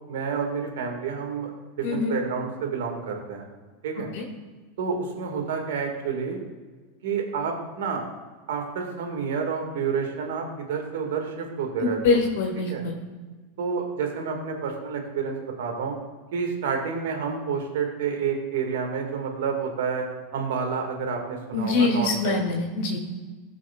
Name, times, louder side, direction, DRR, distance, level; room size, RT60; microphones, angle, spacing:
voice 1, 0.1-3.4 3.8-4.1 4.8-6.4 7.0-8.0 8.5-12.2 12.7-12.8 13.6-16.0 16.3-20.1 20.3-22.4, right 6 dB, 75° right, 3 dB, 1.8 m, -29 dB
voice 2, 1.8-2.2 4.1-4.3 11.8-13.0 21.5-23.0, left 3 dB, 70° left, 0 dB, 1.8 m, -24 dB
18.5 x 6.2 x 2.3 m, 1.4 s
hypercardioid pair, 100°, 0 cm